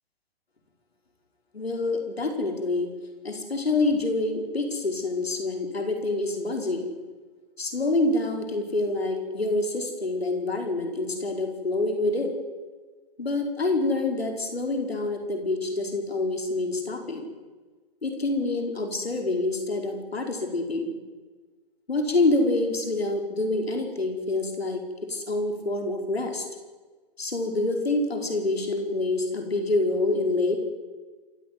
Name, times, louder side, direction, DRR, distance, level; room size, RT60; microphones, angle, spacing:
voice 1, 1.5-2.9 3.2-6.9 7.6-12.3 13.2-17.3 18.0-20.9 21.9-26.4 27.2-30.6, left 2 dB, 90° left, 3 dB, 5.0 m, -27 dB
27.5 x 16.0 x 9.6 m, 1.3 s
figure-of-eight pair, 120°, 30 cm